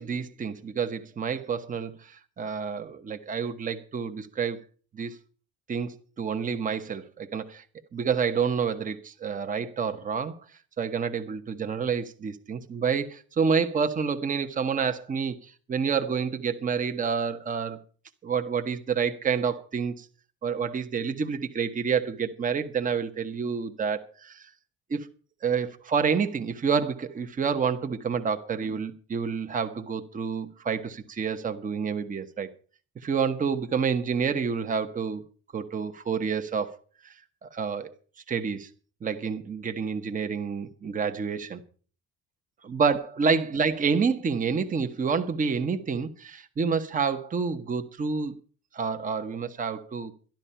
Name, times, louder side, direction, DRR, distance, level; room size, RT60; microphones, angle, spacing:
voice 1, 0.0-4.6 4.9-5.1 5.7-7.6 7.9-10.3 10.8-17.8 18.2-20.1 20.4-24.4 24.9-25.1 25.4-32.5 33.0-35.2 35.5-36.7 37.0-37.1 37.4-37.9 38.3-38.7 39.0-41.6 42.7-48.4 48.7-50.1, right 6 dB, 25° right, 1.1 m, -28 dB
12.0 x 12.0 x 5.7 m
cardioid pair, 150°, 29 cm